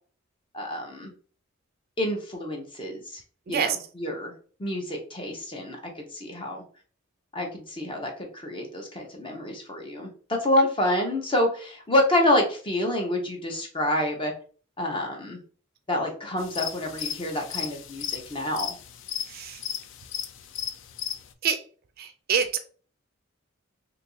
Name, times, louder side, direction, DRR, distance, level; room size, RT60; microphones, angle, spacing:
voice 1, 0.5-1.1 2.0-3.2 3.5-4.3 4.6-6.6 7.3-14.3 14.8-15.4 15.9-18.8, left 1 dB, 25° left, 1 dB, 0.8 m, -28 dB
sound 1, 16.4-21.3, left 9 dB, 60° left, 0.4 m, -35 dB
voice 2, 22.0-22.6, right 7 dB, 45° right, 8 dB, 0.3 m, -26 dB
2.8 x 2.6 x 3.8 m, 0.42 s
head